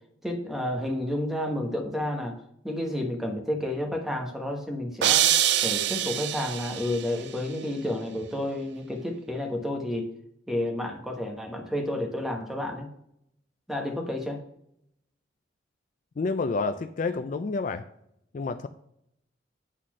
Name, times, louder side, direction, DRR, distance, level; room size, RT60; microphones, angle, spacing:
voice 1, 0.2-2.4 2.6-5.3 5.6-10.1 10.5-12.9 13.7-14.4, left 1 dB, ahead, 2 dB, 1.2 m, -30 dB
sound 1, 5.0-7.1, right 11 dB, 65° right, 0.4 m, -24 dB
voice 2, 16.2-17.8 18.3-18.7, left 4 dB, 45° left, 9 dB, 0.4 m, -29 dB
8.2 x 4.2 x 6.1 m, 0.75 s
head